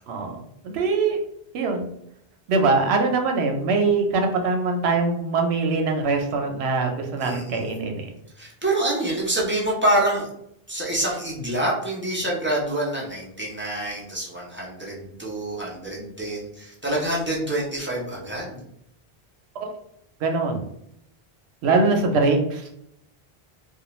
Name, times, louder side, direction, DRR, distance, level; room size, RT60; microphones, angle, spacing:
voice 1, 0.1-1.2 1.5-1.9 2.5-8.1 19.6-19.7 20.2-20.6 21.6-22.7, right 3 dB, 85° right, 4 dB, 0.8 m, -22 dB
voice 2, 7.2-7.7 8.4-10.3 10.7-18.6, right 1 dB, 15° right, -5 dB, 0.4 m, -26 dB
2.4 x 2.2 x 3.0 m, 0.74 s
omnidirectional pair, 1.1 m